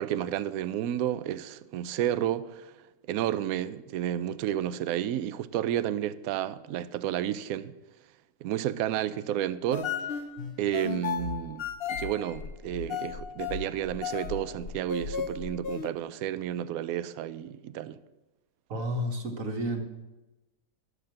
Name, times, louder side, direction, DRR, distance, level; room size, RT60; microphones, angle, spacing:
voice 1, 0.0-2.7 3.1-7.7 8.4-9.9 10.6-11.6 11.9-18.0, right 11 dB, 70° right, 0.9 m, -31 dB
sound 1, 9.7-15.9, left 7 dB, 80° left, 0.5 m, -35 dB
voice 2, 18.7-19.8, equal, 50° right, 1.7 m, -31 dB
12.0 x 6.5 x 7.6 m
omnidirectional pair, 1.9 m